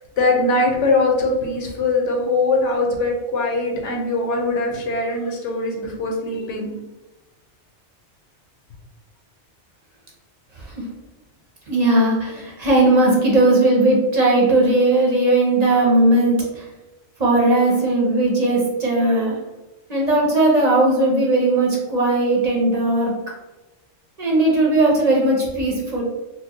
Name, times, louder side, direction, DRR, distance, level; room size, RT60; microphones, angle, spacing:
voice 1, 0.0-6.7, left 2 dB, 85° left, 1 dB, 1.1 m, -21 dB
voice 2, 11.7-16.6 17.2-19.4 19.9-23.1 24.2-26.0, right 2 dB, 40° right, -3 dB, 0.7 m, -17 dB
4.3 x 2.0 x 2.9 m, 1.1 s
omnidirectional pair, 1.2 m